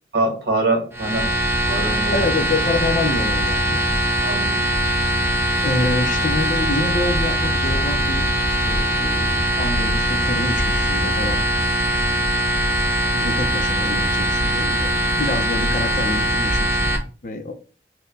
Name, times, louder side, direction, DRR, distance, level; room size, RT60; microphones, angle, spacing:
voice 1, 0.1-1.3 1.7-2.3 4.2-4.6, right 2 dB, 65° right, 1.4 m, -23 dB
sound 1, 0.9-17.0, equal, 15° right, 0.6 m, -21 dB
voice 2, 2.1-3.9 4.8-4.9 5.6-11.5 13.1-14.9 15.2-16.9 17.2-17.5, left 2 dB, 45° left, 0.5 m, -27 dB
4.3 x 2.2 x 3.9 m
head